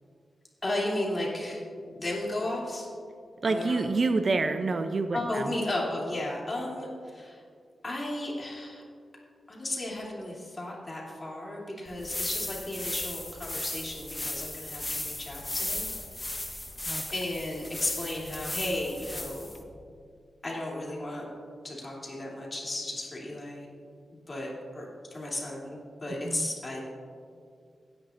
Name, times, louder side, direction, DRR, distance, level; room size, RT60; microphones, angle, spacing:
voice 1, 0.6-1.6 1.9-2.9 3.4-3.9 5.1-7.4 7.8-8.8 9.5-15.9 16.2-16.6 17.1-19.7 20.4-21.2 21.6-23.7 24.3-26.8, left 1 dB, 35° left, -3 dB, 3.0 m, -34 dB
voice 2, 3.4-5.5 16.9-17.0 26.2-26.5, right 3 dB, 50° right, 8 dB, 0.5 m, -27 dB
sound 1, 11.9-19.6, left 1 dB, 20° left, 1.0 m, -36 dB
16.5 x 9.8 x 2.6 m, 2.3 s
wide cardioid pair, 90°, 0 cm